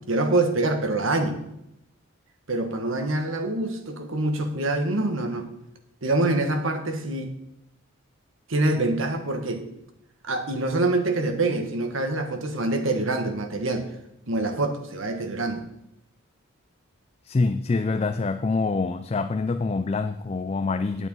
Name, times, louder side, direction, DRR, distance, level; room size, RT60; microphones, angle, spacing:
voice 1, 0.1-1.4 2.5-5.5 6.0-7.3 8.5-9.6 10.2-13.9 14.3-15.6, right 2 dB, 65° right, 6 dB, 1.5 m, -25 dB
voice 2, 17.2-21.1, left 3 dB, 30° left, 10 dB, 0.3 m, -25 dB
9.6 x 8.0 x 5.4 m, 0.81 s
head